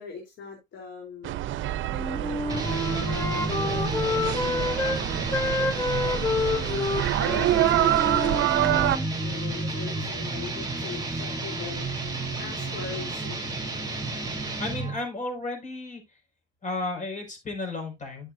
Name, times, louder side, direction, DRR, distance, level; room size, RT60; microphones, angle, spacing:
voice 1, 0.0-1.4 3.6-4.7 6.5-11.9 12.2-13.4, left 5 dB, 70° left, -1 dB, 3.4 m, -41 dB
sound 1, 1.2-9.0, right 14 dB, 80° right, 0.5 m, -27 dB
Wind instrument woodwind instrument, 1.9-5.0 5.3-9.1, left 3 dB, 15° left, 1.6 m, -29 dB
sound 2, 2.5-15.0, right 2 dB, 20° right, 3.3 m, -31 dB
voice 2, 14.6-16.0 16.6-18.3, left 2 dB, 40° left, 2 dB, 5.5 m, -33 dB
12.0 x 6.9 x 2.6 m, 0.22 s
cardioid pair, 90°, 20 cm